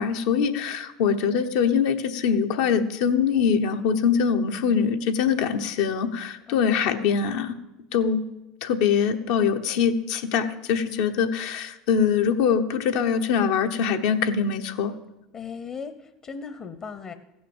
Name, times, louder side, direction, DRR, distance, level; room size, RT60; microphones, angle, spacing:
voice 1, 0.0-7.6 7.9-8.2 8.6-14.9, left 7 dB, 70° left, 6 dB, 1.0 m, -23 dB
voice 2, 6.5-7.0 15.3-17.1, left 6 dB, 35° left, 10 dB, 0.9 m, -38 dB
15.5 x 6.3 x 7.2 m, 0.95 s
hypercardioid pair, 90°, 2 cm